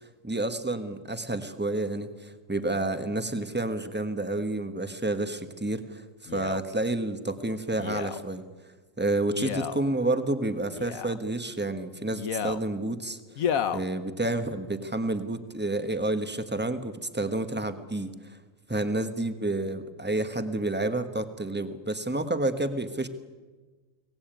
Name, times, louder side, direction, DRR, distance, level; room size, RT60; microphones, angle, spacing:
voice 1, 0.2-8.4 9.0-13.2 13.7-18.4 18.7-23.1, right 2 dB, 10° right, 9 dB, 1.3 m, -29 dB
Male speech man speaking, 6.3-6.6 7.8-8.2 9.3-9.8 10.7-11.2 12.1-12.6 13.4-13.8 14.5-14.6, left 8 dB, 70° left, 1.4 m, -31 dB
24.0 x 18.5 x 9.1 m, 1.3 s
omnidirectional pair, 1.5 m